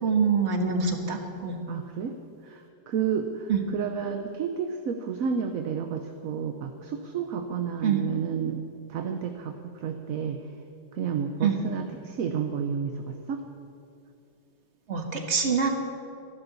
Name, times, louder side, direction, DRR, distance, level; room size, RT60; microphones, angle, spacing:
voice 1, 0.0-1.6 3.5-3.6 7.8-8.0 11.4-11.6 14.9-15.7, right 6 dB, 40° right, 4 dB, 1.6 m, -25 dB
voice 2, 1.7-2.1 2.4-8.6 8.9-10.4 10.9-13.4, right 7 dB, 60° right, 5 dB, 1.1 m, -31 dB
25.0 x 11.5 x 4.1 m, 2.5 s
omnidirectional pair, 1.9 m